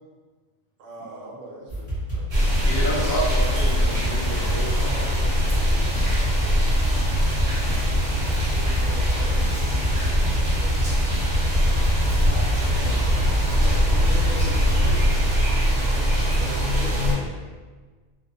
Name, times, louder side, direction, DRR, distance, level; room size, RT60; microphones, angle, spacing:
voice 1, 0.8-2.8 7.8-11.0 13.7-14.1 15.8-17.3, right 2 dB, 70° right, -3 dB, 0.9 m, -43 dB
sound 1, 1.7-15.1, equal, 15° left, 0.6 m, -26 dB
sound 2, 2.3-17.1, equal, 45° right, 0.7 m, -23 dB
voice 2, 2.6-5.3, equal, 90° left, -4 dB, 1.2 m, -29 dB
voice 3, 12.7-13.3 13.6-15.3, left 1 dB, 70° left, -4 dB, 1.0 m, -38 dB
2.6 x 2.1 x 2.6 m, 1.4 s
omnidirectional pair, 1.4 m